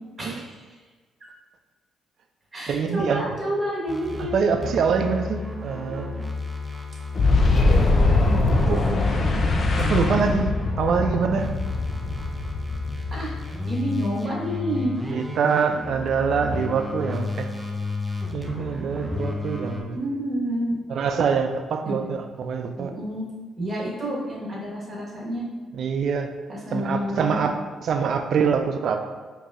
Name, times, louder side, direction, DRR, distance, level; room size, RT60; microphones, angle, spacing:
voice 1, 0.2-0.6 1.2-1.3 2.5-4.4 5.8-6.0 7.3-9.6 13.1-13.3 13.6-15.0 18.8-18.9 19.2-19.3 19.9-20.7 21.8-22.1 22.8-23.3 23.6-25.4 26.5-27.4, equal, 30° right, -5 dB, 1.3 m, -30 dB
voice 2, 2.7-3.2 4.2-6.1 8.7-8.8 9.8-10.5 10.8-11.5 15.1-17.5 18.3-20.0 20.9-22.9 25.7-26.3 26.7-27.5 27.8-29.0, right 6 dB, 65° right, 6 dB, 0.3 m, -24 dB
sound 1, 3.9-4.3 4.6-19.8, left 3 dB, 5° right, 0.5 m, -32 dB
Boom, 7.2-13.7, left 3 dB, 45° left, 0.5 m, -22 dB
4.9 x 2.7 x 2.5 m, 1.4 s
cardioid pair, 90°, 0 cm